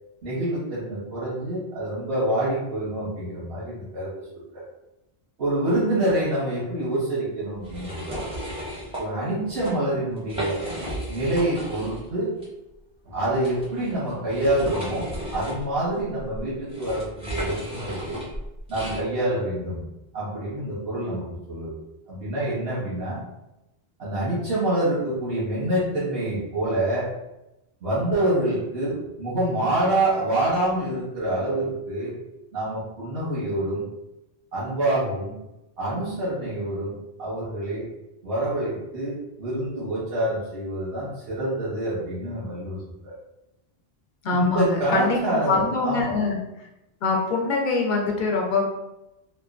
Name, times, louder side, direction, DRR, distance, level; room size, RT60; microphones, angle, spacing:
voice 1, 0.2-4.6 5.4-8.2 9.0-10.6 11.1-12.3 13.0-18.2 18.7-19.8 20.1-21.7 22.1-23.2 24.0-27.1 27.8-32.2 32.5-33.9 34.5-35.3 35.8-36.9 37.2-37.8 38.2-42.8 43.0-43.1 44.3-46.1, right 1 dB, 85° right, -9 dB, 1.2 m, -26 dB
sound 1, 7.6-9.0 9.5-9.7 10.2-12.1 12.4-12.5 13.4-19.0, equal, 5° right, 0.5 m, -34 dB
voice 2, 44.2-46.4 47.0-48.7, left 3 dB, 55° left, -1 dB, 0.6 m, -24 dB
2.9 x 2.2 x 2.4 m, 0.94 s
omnidirectional pair, 1.1 m